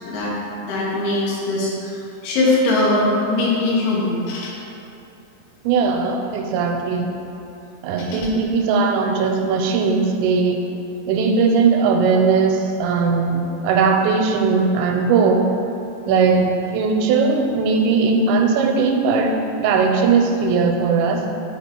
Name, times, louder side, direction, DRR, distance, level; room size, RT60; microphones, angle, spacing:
voice 1, 0.6-4.5 8.0-8.2 16.1-16.5, left 2 dB, 70° left, -5 dB, 3.0 m, -21 dB
voice 2, 5.6-7.2 7.8-10.6 11.1-15.5 16.1-16.4 16.7-21.2, right 5 dB, 90° right, 2 dB, 2.9 m, -18 dB
7.2 x 4.9 x 4.4 m, 2.9 s
omnidirectional pair, 5.1 m